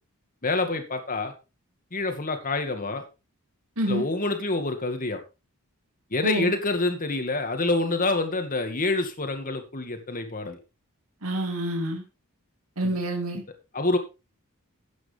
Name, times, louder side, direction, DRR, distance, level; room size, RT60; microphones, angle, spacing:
voice 1, 0.4-1.3 1.9-3.0 3.8-5.2 6.1-10.6 12.8-13.0 13.7-14.0, left 2 dB, 40° left, 6 dB, 2.1 m, -27 dB
voice 2, 11.2-12.0 12.8-13.4, right 1 dB, 70° right, 4 dB, 2.2 m, -27 dB
12.5 x 9.3 x 3.5 m, 0.28 s
head